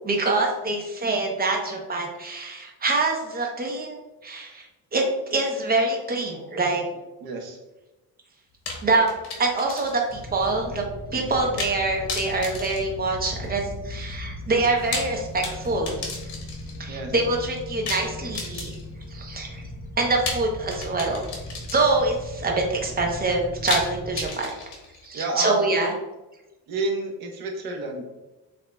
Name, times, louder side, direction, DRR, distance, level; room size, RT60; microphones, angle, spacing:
voice 1, 0.0-4.7 4.9-5.0 5.3-6.8 8.8-9.1 9.4-10.8 11.1-16.2 16.8-18.8 19.1-19.6 20.0-21.2 21.7-24.5 25.0-25.9, right 3 dB, 25° right, 1 dB, 0.8 m, -25 dB
voice 2, 7.2-7.6 16.9-17.1 25.1-25.7 26.7-28.0, right 2 dB, 65° right, 2 dB, 1.1 m, -30 dB
sound 1, 8.7-10.2 10.5-10.6 11.6-11.8 12.1-13.6 14.7-16.8 17.9-19.0 20.3-22.2 23.7-25.1, left 4 dB, 75° left, 1.3 m, -34 dB
sound 2, 10.1-24.3, left 1 dB, 30° left, 0.4 m, -38 dB
7.4 x 2.9 x 2.2 m, 1.1 s
cardioid pair, 140°, 39 cm